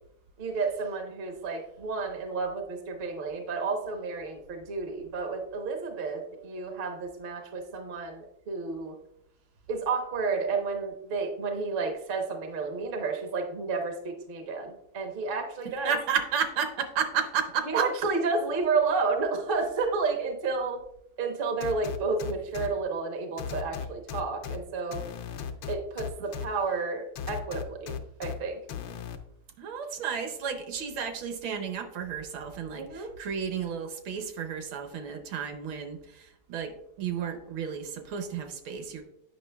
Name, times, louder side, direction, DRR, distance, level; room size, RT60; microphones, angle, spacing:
voice 1, 0.4-9.0 9.7-15.9 17.7-20.8 21.2-25.0 25.7-28.6 32.7-33.1, right 4 dB, 55° right, 4 dB, 0.5 m, -31 dB
voice 2, 15.6-17.9 29.6-39.0, right 7 dB, 75° right, 7 dB, 1.5 m, -32 dB
sound 1, 21.6-22.7 23.4-24.6 24.9-26.5 27.2-28.3 28.7-29.2, left 8 dB, 75° left, 1.2 m, -36 dB
8.3 x 5.6 x 2.2 m, 0.76 s
omnidirectional pair, 2.3 m